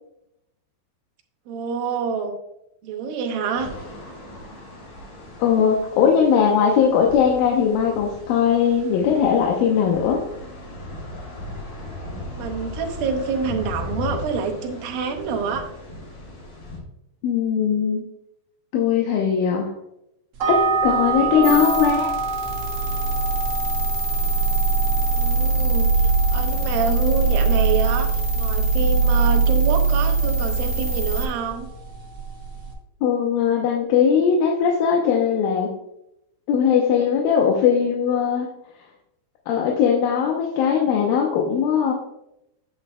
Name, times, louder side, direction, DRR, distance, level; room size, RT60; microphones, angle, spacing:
voice 1, 1.5-2.4 2.8-3.7 12.3-15.7 25.1-31.7, right 5 dB, 80° right, 4 dB, 2.6 m, -27 dB
sound 1, 3.5-16.8, left 2 dB, 50° left, 3.9 m, -37 dB
voice 2, 5.4-10.2 17.2-18.0 18.7-19.7 20.5-22.1 33.0-35.7 36.5-38.5 39.5-41.9, left 7 dB, 80° left, 0 dB, 2.5 m, -19 dB
sound 2, 20.4-32.7, right 3 dB, 55° right, 1.6 m, -29 dB
sound 3, 21.4-31.3, right 4 dB, 25° left, 1.9 m, -21 dB
9.2 x 7.7 x 2.3 m, 0.83 s
omnidirectional pair, 4.2 m